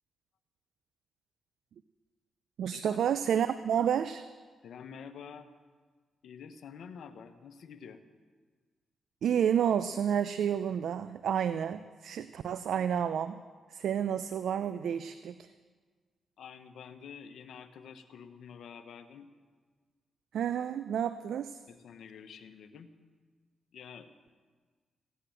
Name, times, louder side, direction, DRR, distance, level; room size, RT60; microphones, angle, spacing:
voice 1, 2.6-4.3 9.2-13.4 13.7-15.5 20.3-21.6, right 8 dB, 75° right, 13 dB, 0.4 m, -30 dB
voice 2, 4.6-5.5 6.2-8.0 16.4-19.3 21.7-22.9 23.7-24.1, left 7 dB, 75° left, 9 dB, 1.1 m, -48 dB
16.0 x 9.8 x 7.8 m, 1.5 s
supercardioid pair, 50°, 0 cm